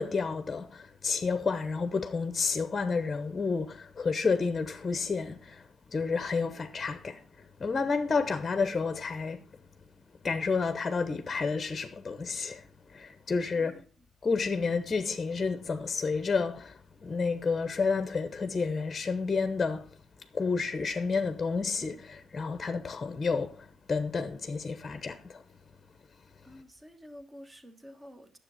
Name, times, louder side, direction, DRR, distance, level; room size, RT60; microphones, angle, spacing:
voice 1, 0.0-5.6 5.9-9.4 10.2-13.8 14.2-19.9 20.3-25.4, left 4 dB, 30° left, 0.8 m, -30 dB
voice 2, 13.5-13.8 26.4-28.4, equal, 15° right, 1.2 m, -50 dB
9.8 x 7.3 x 5.6 m
cardioid pair, 90°, 0 cm